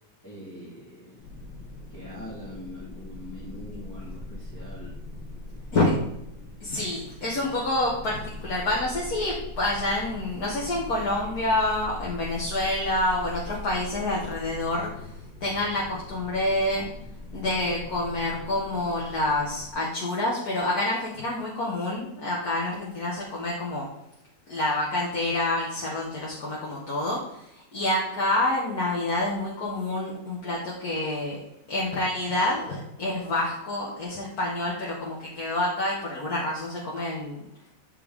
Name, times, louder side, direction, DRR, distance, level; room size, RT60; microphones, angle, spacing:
voice 1, 0.2-1.4 1.9-5.0, left 1 dB, 10° left, -10 dB, 2.1 m, -42 dB
sound 1, 1.2-19.7, left 1 dB, 80° left, 2.0 m, -41 dB
voice 2, 6.6-14.9 15.4-16.9 17.3-23.9 24.5-31.4 31.7-37.4, left 1 dB, 60° left, -4 dB, 2.1 m, -27 dB
12.5 x 4.5 x 3.7 m, 0.81 s
omnidirectional pair, 1.9 m